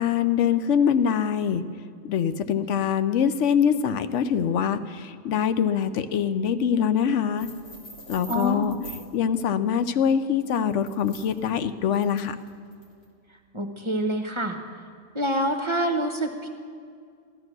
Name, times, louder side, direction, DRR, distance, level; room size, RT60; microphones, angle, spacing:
voice 1, 0.0-1.6 2.1-7.5 8.1-8.8 9.1-12.3, left 8 dB, 85° left, 11 dB, 1.0 m, -24 dB
sound 1, 7.4-9.1 10.4-13.1, equal, 60° left, 2.1 m, -45 dB
voice 2, 8.3-8.7 13.5-14.6 15.1-16.5, equal, 25° right, 5 dB, 0.9 m, -26 dB
15.0 x 12.0 x 6.1 m, 2.2 s
omnidirectional pair, 1.2 m